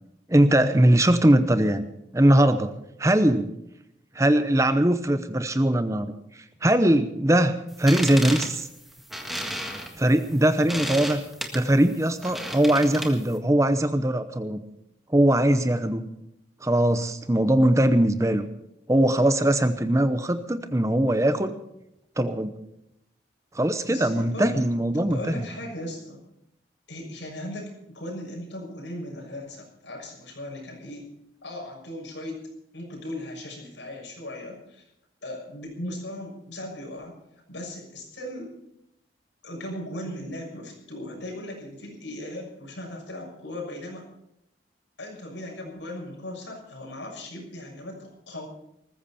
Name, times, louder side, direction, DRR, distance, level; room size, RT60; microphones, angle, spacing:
voice 1, 0.3-1.9 2.1-2.7 3.0-3.5 4.1-6.1 6.6-8.7 10.0-11.2 11.5-14.6 15.1-16.0 16.6-18.5 18.9-21.5 22.2-22.5 23.5-25.4, right 1 dB, 15° right, 10 dB, 0.8 m, -21 dB
sound 1, 7.7-13.4, equal, ahead, 1.7 m, -34 dB
voice 2, 23.9-24.6 24.9-26.2 26.9-31.1 31.4-32.4 32.7-34.8 35.2-37.1 37.5-38.5 39.4-44.1 45.0-48.5, left 1 dB, 80° left, 0 dB, 6.5 m, -37 dB
20.0 x 14.5 x 4.3 m, 0.81 s
head